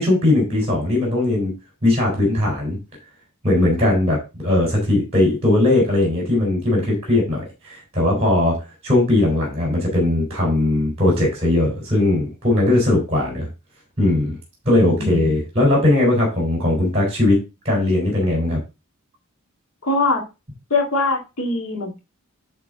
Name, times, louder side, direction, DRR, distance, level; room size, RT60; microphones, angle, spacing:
voice 1, 0.0-1.5 1.8-2.8 3.4-13.5 14.0-14.4 14.7-17.4 17.6-18.6, left 1 dB, 30° right, -1 dB, 3.6 m, -19 dB
voice 2, 14.8-15.3 19.8-20.2 20.7-22.0, left 2 dB, 80° left, 0 dB, 2.0 m, -22 dB
10.5 x 3.8 x 3.7 m, 0.27 s
head